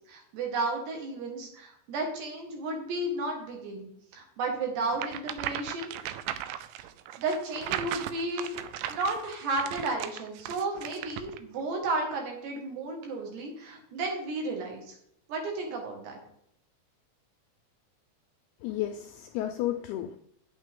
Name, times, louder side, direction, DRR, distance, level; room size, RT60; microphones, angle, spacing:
voice 1, 0.1-6.2 7.2-8.5 8.9-15.0 15.3-16.1, right 2 dB, 70° right, 1 dB, 4.0 m, -33 dB
sound 1, 4.9-11.4, right 12 dB, 90° right, 2.9 m, -37 dB
voice 2, 18.6-20.2, left 13 dB, 85° left, 6 dB, 2.3 m, -32 dB
9.4 x 8.8 x 3.7 m, 0.72 s
omnidirectional pair, 5.1 m